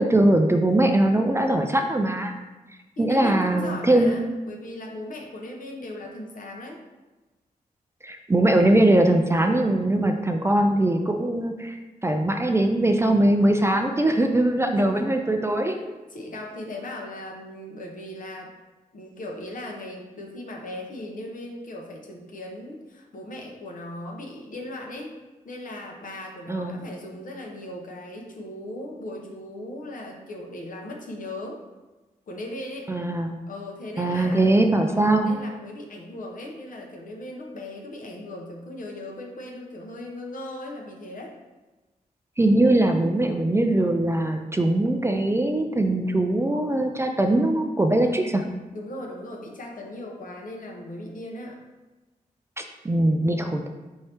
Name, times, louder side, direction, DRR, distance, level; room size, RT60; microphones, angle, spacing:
voice 1, 0.0-2.4 3.0-4.1 8.0-11.8 12.0-15.8 26.5-26.8 32.9-33.3 34.0-35.3 42.4-48.4 52.6-53.7, right 1 dB, 15° right, 4 dB, 0.4 m, -21 dB
voice 2, 3.0-6.8 14.6-15.1 15.7-15.8 16.1-18.5 18.9-25.1 25.4-31.6 32.3-32.9 33.5-34.5 34.8-41.3 48.0-48.4 48.7-51.6, left 1 dB, 60° left, 0 dB, 0.8 m, -38 dB
4.3 x 2.7 x 3.3 m, 1.2 s
cardioid pair, 55°, 15 cm